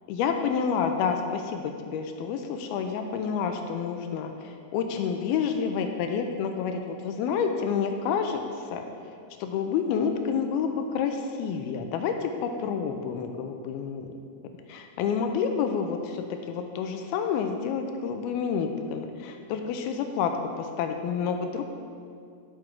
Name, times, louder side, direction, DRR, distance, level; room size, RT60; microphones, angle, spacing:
voice 1, 0.1-8.4 8.7-8.8 9.4-14.1 14.7-20.3 20.6-21.6, left 6 dB, 85° left, 5 dB, 2.3 m, -29 dB
11.5 x 6.1 x 4.5 m, 2.3 s
omnidirectional pair, 4.6 m